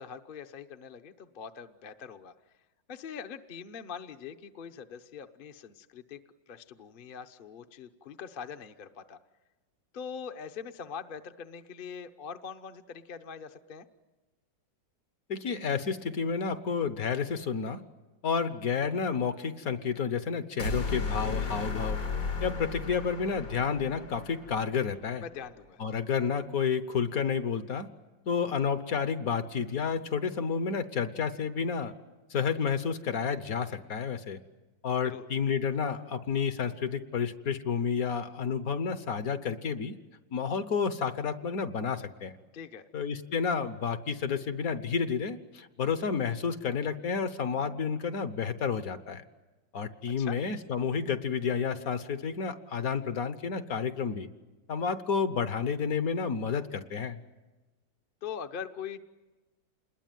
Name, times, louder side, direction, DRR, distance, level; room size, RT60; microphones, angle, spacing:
voice 1, 0.0-2.3 2.9-6.2 6.5-9.2 9.9-13.8 25.2-25.8 35.0-35.2 42.5-42.9 50.2-50.4 58.2-59.1, left 7 dB, 40° left, 7 dB, 0.8 m, -42 dB
voice 2, 15.3-17.8 18.2-22.0 22.4-25.2 25.8-27.9 28.3-31.9 32.3-34.4 34.8-39.9 40.3-42.3 42.9-49.2 49.7-54.3 54.7-57.2, left 6 dB, 55° left, 11 dB, 1.4 m, -30 dB
sound 1, 20.6-24.9, left 4 dB, 90° left, 3.9 m, -34 dB
27.5 x 21.0 x 9.2 m, 1.2 s
omnidirectional pair, 2.0 m